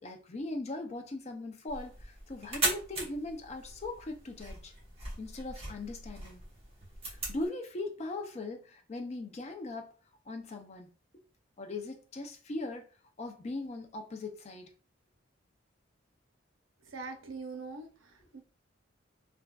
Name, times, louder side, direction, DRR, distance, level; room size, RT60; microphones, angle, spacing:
voice 1, 0.0-4.7 5.2-6.4 7.1-9.9 10.3-10.9 11.6-12.9 13.2-14.7, left 2 dB, 35° left, 0.5 m, -39 dB
sound 1, 1.7-7.5, right 2 dB, 30° right, 1.0 m, -39 dB
voice 2, 16.9-18.4, right 4 dB, 90° right, 0.6 m, -43 dB
3.4 x 2.4 x 2.2 m
head